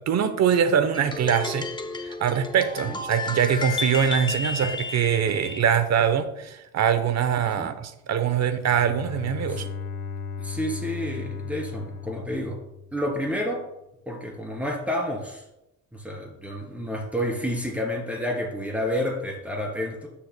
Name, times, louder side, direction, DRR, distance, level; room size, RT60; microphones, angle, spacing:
voice 1, 0.1-1.7 2.0-9.7, right 8 dB, 60° right, 11 dB, 0.9 m, -23 dB
sound 1, 0.9-5.7, left 3 dB, 15° left, 0.7 m, -32 dB
Bowed string instrument, 8.7-13.3, left 5 dB, 85° left, 1.0 m, -36 dB
voice 2, 10.4-12.6 12.9-13.7 14.1-15.4 15.9-20.1, equal, 5° right, -1 dB, 3.2 m, -30 dB
11.5 x 7.2 x 2.2 m, 0.87 s
cardioid pair, 90°, 30 cm